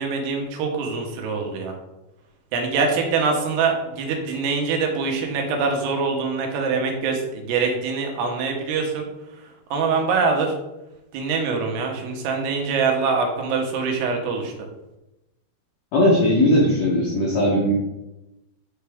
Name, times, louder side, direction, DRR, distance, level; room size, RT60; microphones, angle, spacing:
voice 1, 0.0-1.7 2.5-9.1 9.7-10.5 11.1-14.5, right 4 dB, 90° right, 2 dB, 3.1 m, -24 dB
voice 2, 15.9-17.7, left 1 dB, 80° left, -3 dB, 1.5 m, -18 dB
5.9 x 5.7 x 3.5 m, 0.95 s
omnidirectional pair, 4.6 m